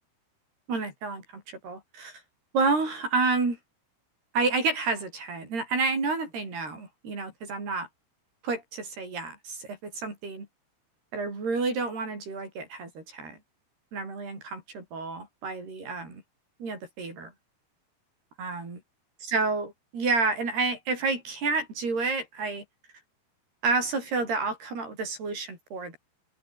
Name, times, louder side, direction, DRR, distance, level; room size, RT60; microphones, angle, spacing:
voice 1, 0.7-2.2 2.5-3.6 4.3-7.9 8.4-10.5 11.1-13.4 13.9-16.2 16.6-17.3 18.4-18.8 19.2-22.6 23.6-26.0, right 3 dB, 55° right, 9.7 m, -30 dB
open air
omnidirectional pair, 5.7 m